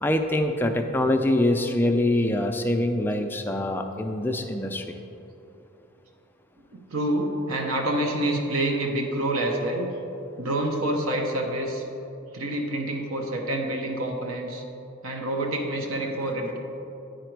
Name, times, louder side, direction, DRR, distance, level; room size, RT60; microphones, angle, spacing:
voice 1, 0.0-4.9, left 1 dB, 10° left, 4 dB, 0.3 m, -24 dB
voice 2, 6.7-9.9 10.4-11.8 12.3-14.6 15.0-16.6, right 1 dB, 80° right, 2 dB, 0.8 m, -27 dB
8.9 x 5.1 x 4.5 m, 2.8 s
head